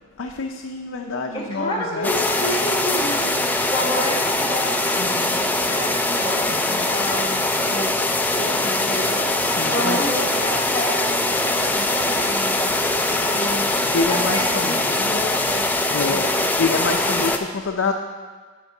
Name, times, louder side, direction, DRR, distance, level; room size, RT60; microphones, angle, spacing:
voice 1, 0.2-2.1 5.0-5.4 6.5-6.9 9.4-10.0 13.9-15.5 15.9-16.2 16.6-17.9, left 4 dB, 70° left, 2 dB, 0.5 m, -27 dB
voice 2, 1.3-7.9 8.3-9.3 9.6-13.7 14.1-15.7 15.9-16.5, equal, 25° left, -3 dB, 1.4 m, -30 dB
sound 1, 2.0-17.4, left 2 dB, 10° left, 0.3 m, -22 dB
8.2 x 5.2 x 5.9 m, 1.4 s
head